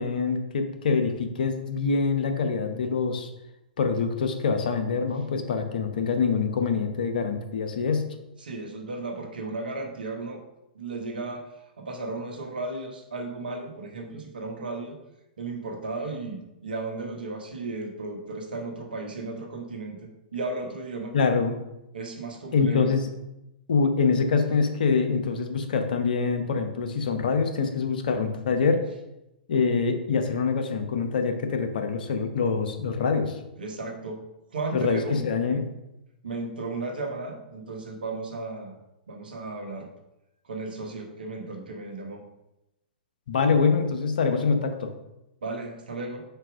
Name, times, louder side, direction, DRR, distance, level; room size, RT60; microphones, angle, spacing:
voice 1, 0.0-3.3 3.8-8.1 21.1-21.6 22.5-23.1 23.7-28.8 29.5-33.4 34.7-35.6 43.3-44.9, left 5 dB, 65° left, 6 dB, 0.9 m, -25 dB
voice 2, 8.4-10.4 10.7-11.5 11.8-15.0 15.4-21.1 21.9-22.9 33.6-34.2 34.5-35.3 36.2-38.8 39.1-39.9 40.4-42.2 45.4-46.2, right 3 dB, 75° right, 3 dB, 1.1 m, -35 dB
4.5 x 4.3 x 5.0 m, 0.91 s
hypercardioid pair, 115°, 5 cm